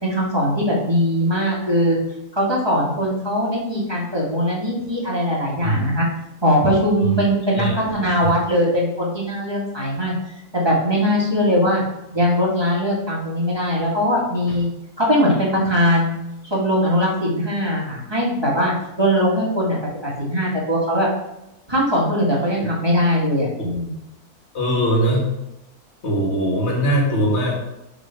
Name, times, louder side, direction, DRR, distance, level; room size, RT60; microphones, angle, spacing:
voice 1, 0.0-2.0 2.3-6.1 6.4-10.1 10.5-11.8 12.1-14.7 15.0-16.2 16.5-19.8 20.0-21.1 21.7-23.9, equal, 15° right, -5 dB, 1.8 m, -20 dB
voice 2, 5.6-5.9 7.0-7.2 7.5-7.8 22.6-22.7 24.5-25.2 26.0-27.5, right 1 dB, 45° left, -2 dB, 2.1 m, -20 dB
6.9 x 3.8 x 5.8 m, 0.91 s
omnidirectional pair, 1.6 m